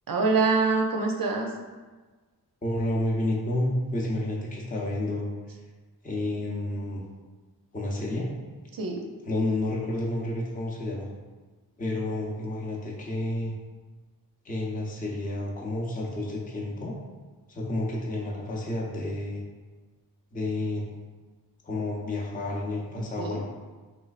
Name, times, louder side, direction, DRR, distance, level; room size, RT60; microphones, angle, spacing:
voice 1, 0.1-1.5 8.7-9.0 23.2-23.4, right 4 dB, 60° right, 2 dB, 0.5 m, -25 dB
voice 2, 2.6-5.3 6.0-7.1 7.7-8.3 9.2-11.1 11.8-13.5 14.4-16.9 17.5-19.4 20.3-20.8 21.6-23.4, left 1 dB, 20° left, -3 dB, 0.5 m, -30 dB
3.1 x 3.1 x 2.4 m, 1.3 s
wide cardioid pair, 85°, 39 cm